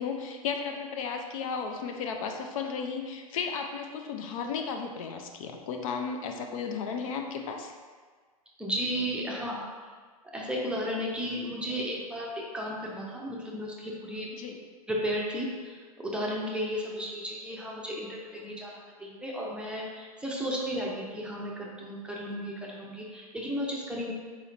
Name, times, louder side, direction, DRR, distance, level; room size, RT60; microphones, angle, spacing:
voice 1, 0.0-7.7 14.3-14.6, left 6 dB, 60° left, 4 dB, 0.4 m, -34 dB
voice 2, 8.6-9.6 10.3-14.3 14.9-24.1, equal, 5° right, -3 dB, 0.5 m, -34 dB
4.1 x 2.8 x 2.5 m, 1.5 s
hypercardioid pair, 105°, 20 cm